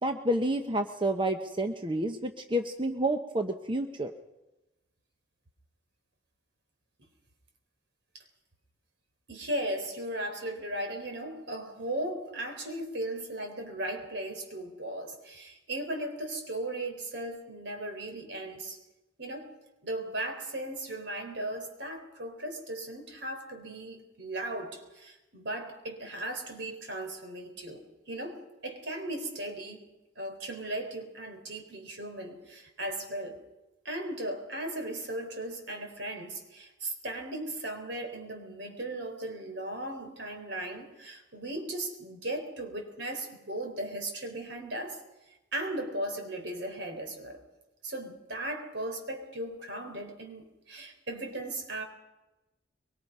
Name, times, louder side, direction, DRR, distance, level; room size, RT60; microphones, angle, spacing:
voice 1, 0.0-4.1, right 1 dB, 25° right, 5 dB, 1.0 m, -29 dB
voice 2, 9.3-18.8 19.2-19.5 19.8-29.8 30.2-33.4 33.8-45.0 45.3-47.4 47.8-51.8, right 1 dB, 65° right, 4 dB, 4.4 m, -37 dB
23.5 x 23.5 x 5.5 m, 1.0 s
head